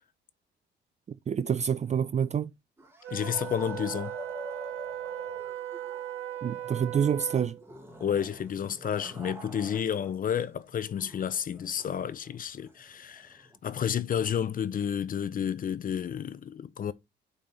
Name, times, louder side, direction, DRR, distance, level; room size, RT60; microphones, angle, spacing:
voice 1, 1.3-2.5 6.4-7.6, right 7 dB, 35° right, 0.4 m, -27 dB
sound 1, 2.8-10.2 10.4-14.3, right 1 dB, 10° right, 1.7 m, -48 dB
Wind instrument woodwind instrument, 3.0-7.7, right 12 dB, 85° right, 1.2 m, -38 dB
voice 2, 3.1-4.1 8.0-16.9, left 8 dB, 45° left, 0.6 m, -31 dB
8.7 x 4.2 x 3.3 m
cardioid pair, 90°, 20 cm